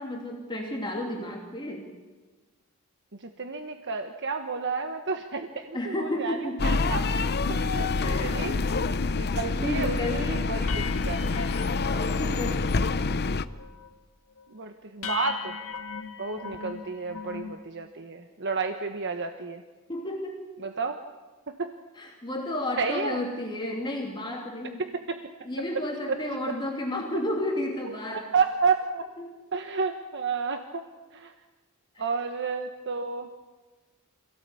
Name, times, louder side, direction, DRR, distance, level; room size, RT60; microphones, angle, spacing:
voice 1, 0.0-1.9 5.7-6.8 8.0-8.4 8.8-8.9 9.3-10.5 11.8-13.2 19.9-20.5 22.0-24.8 25.4-28.3 29.2-29.3, left 1 dB, 20° left, 0 dB, 2.9 m, -32 dB
voice 2, 3.1-7.0 7.5-8.8 9.1-11.2 14.5-15.6 16.2-19.6 20.6-21.0 21.5-21.7 22.8-23.2 24.8-25.2 26.1-26.2 27.8-29.1 29.5-30.8 31.1-31.3 32.0-33.3, right 4 dB, 55° right, 6 dB, 1.3 m, -31 dB
sound 1, 6.6-13.4, left 3 dB, 50° left, 0.8 m, -27 dB
sound 2, 9.1-9.2 9.6-9.9 10.2-10.3 10.7-12.5 12.8-13.2 13.5-13.9 14.4-14.5 15.0-17.6, left 6 dB, 65° left, 1.9 m, -39 dB
26.0 x 17.5 x 8.5 m, 1.3 s
head